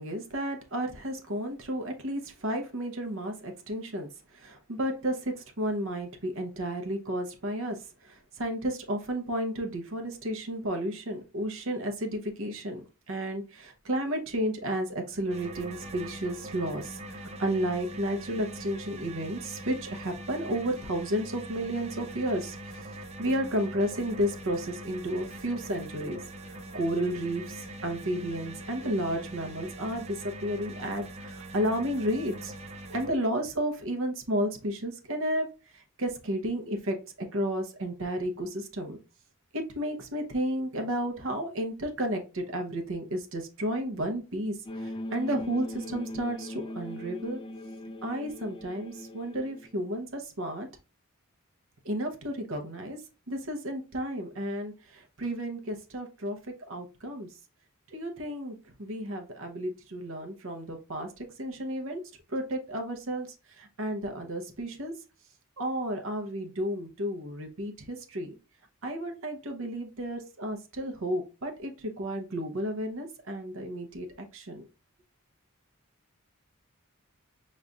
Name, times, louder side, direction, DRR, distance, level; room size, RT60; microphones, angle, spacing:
voice 1, 0.0-7.8 8.0-12.8 13.1-22.6 23.2-26.2 26.7-32.5 32.9-35.5 35.7-37.0 37.3-39.0 39.5-47.4 48.0-50.7 51.8-53.0 53.3-56.4 56.7-57.3 57.9-62.0 62.3-63.3 63.6-64.9 65.6-68.3 68.8-74.1 74.3-74.6, equal, 65° right, 4 dB, 0.9 m, -32 dB
sound 1, 15.3-33.1, right 1 dB, 30° right, 0.5 m, -42 dB
sound 2, 44.7-49.7, left 1 dB, 25° left, 0.4 m, -39 dB
5.2 x 3.1 x 2.3 m, 0.32 s
head